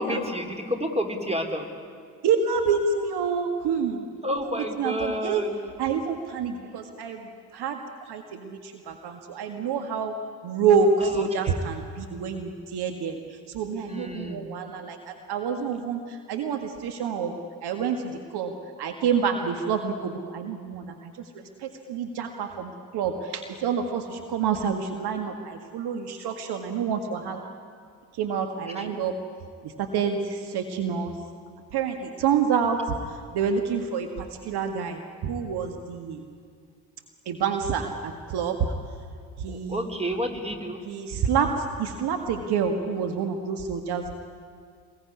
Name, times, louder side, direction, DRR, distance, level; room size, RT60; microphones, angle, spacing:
voice 1, 0.0-1.7 4.2-5.5 11.0-11.2 11.5-11.6 13.9-14.4 39.5-40.8, equal, 15° right, 5 dB, 3.9 m, -30 dB
voice 2, 2.2-4.1 4.4-5.4 5.8-10.1 10.4-18.5 18.8-27.5 28.1-29.1 29.6-31.1 31.7-36.2 37.3-38.7 39.4-39.9 40.9-44.2, right 6 dB, 55° right, 5 dB, 1.9 m, -28 dB
25.5 x 21.0 x 9.7 m, 2.1 s
figure-of-eight pair, 45°, 47 cm